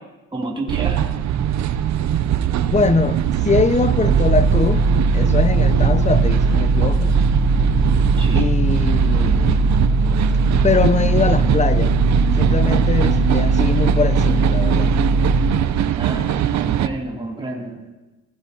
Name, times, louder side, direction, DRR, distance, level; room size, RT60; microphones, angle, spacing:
voice 1, 0.3-1.0 8.2-8.5 16.0-17.9, right 2 dB, 15° right, 2.9 m, -29 dB
sound 1, 0.7-16.9, right 10 dB, 65° right, 0.7 m, -21 dB
voice 2, 2.7-4.9 5.1-7.2 8.3-9.6 10.6-12.0 12.4-14.9, left 5 dB, 25° left, 0.6 m, -22 dB
sound 2, 4.1-15.5, right 2 dB, 30° right, 1.1 m, -19 dB
19.0 x 15.5 x 2.9 m
cardioid pair, 90°, 30 cm